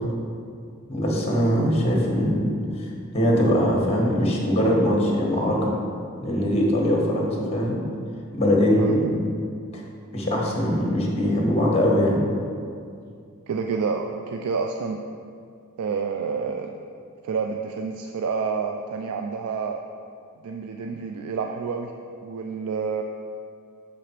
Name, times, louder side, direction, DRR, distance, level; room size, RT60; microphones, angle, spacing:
voice 1, 0.9-2.5 2.8-2.9 3.1-5.7 6.2-7.8 8.3-9.1 9.7-9.8 10.1-12.2, equal, 30° left, -2 dB, 1.2 m, -21 dB
voice 2, 13.5-15.0 15.8-16.7 17.2-19.8 20.4-21.9 22.2-23.0, right 5 dB, 75° right, 4 dB, 0.3 m, -28 dB
6.8 x 4.9 x 4.4 m, 2.4 s
head